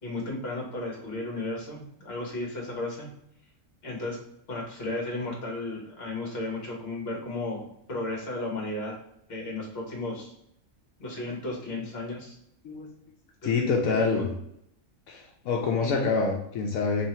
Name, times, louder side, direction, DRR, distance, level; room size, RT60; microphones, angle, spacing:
voice 1, 0.0-3.1 3.8-4.2 4.5-8.9 9.3-10.3 11.0-12.4 13.4-13.5 13.9-14.2 15.8-16.0, left 2 dB, 50° left, -1 dB, 1.4 m, -34 dB
voice 2, 13.4-14.3 15.1-17.1, left 4 dB, 85° left, 1 dB, 1.1 m, -26 dB
3.3 x 2.7 x 4.2 m, 0.73 s
omnidirectional pair, 1.4 m